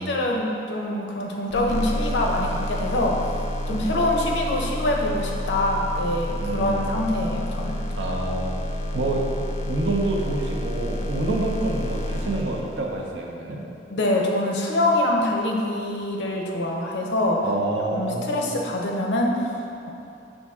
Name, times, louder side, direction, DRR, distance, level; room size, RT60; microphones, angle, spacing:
voice 1, 0.0-3.2 3.7-7.8 13.9-17.5 17.9-19.9, left 1 dB, 85° left, 0 dB, 0.6 m, -25 dB
sound 1, 1.5-13.2, left 1 dB, 40° left, 0.3 m, -29 dB
voice 2, 6.4-6.9 7.9-8.5 8.9-13.6 17.4-18.5, right 2 dB, 85° right, -1 dB, 0.6 m, -27 dB
5.5 x 2.6 x 3.5 m, 2.7 s
head